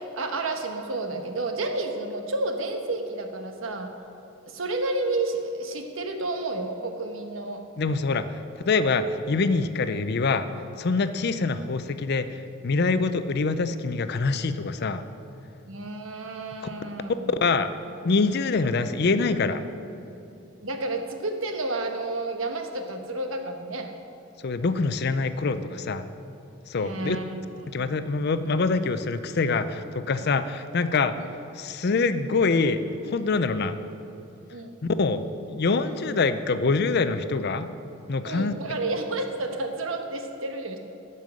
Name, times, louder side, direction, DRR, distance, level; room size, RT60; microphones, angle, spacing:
voice 1, 0.0-3.9 4.4-7.6 11.3-11.4 15.7-17.3 20.6-23.9 26.8-27.7 31.2-31.3 34.5-34.8 38.2-40.8, right 2 dB, 85° right, 5 dB, 1.2 m, -31 dB
voice 2, 7.8-8.4 8.6-10.5 10.8-15.0 17.4-17.7 18.0-19.6 24.4-26.0 26.7-27.2 27.7-31.1 31.5-32.8 33.0-33.8 35.0-35.2 35.5-37.7 38.1-38.5, left 4 dB, 55° left, 11 dB, 0.5 m, -25 dB
12.5 x 5.5 x 7.6 m, 3.0 s
head